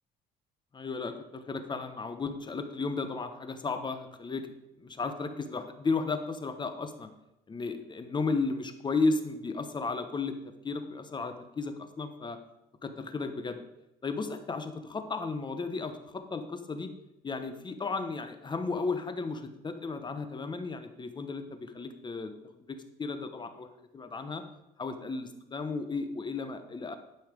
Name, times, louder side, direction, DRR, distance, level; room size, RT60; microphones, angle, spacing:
voice 1, 0.7-4.5 4.8-7.1 7.5-10.4 10.6-12.4 12.8-13.6 14.0-16.9 17.2-22.3 22.7-24.4 24.8-26.9, left 4 dB, 25° left, 8 dB, 1.0 m, -34 dB
12.0 x 5.7 x 5.2 m, 0.89 s
cardioid pair, 110°, 17 cm